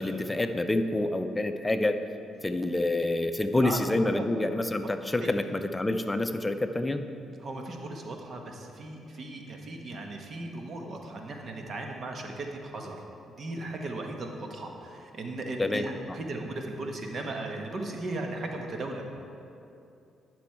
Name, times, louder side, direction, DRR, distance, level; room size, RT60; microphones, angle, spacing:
voice 1, 0.0-2.0 2.4-7.0 15.6-15.9, left 2 dB, 15° left, 8 dB, 0.5 m, -27 dB
voice 2, 7.4-19.0, right 2 dB, 55° right, 2 dB, 1.1 m, -37 dB
10.5 x 6.1 x 4.5 m, 2.6 s
supercardioid pair, 70°, 0 cm